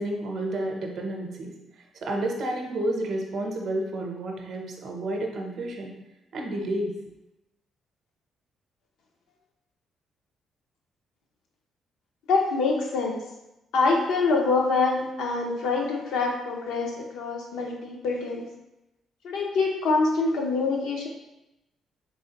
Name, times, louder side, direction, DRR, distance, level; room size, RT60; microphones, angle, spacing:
voice 1, 0.0-1.5 1.9-5.9 6.3-6.9, right 1 dB, 60° right, 1 dB, 0.6 m, -30 dB
voice 2, 12.3-13.2 13.7-18.4 19.2-21.1, left 3 dB, 85° left, 0 dB, 0.7 m, -25 dB
3.7 x 3.1 x 2.8 m, 0.95 s
cardioid pair, 90°, 0 cm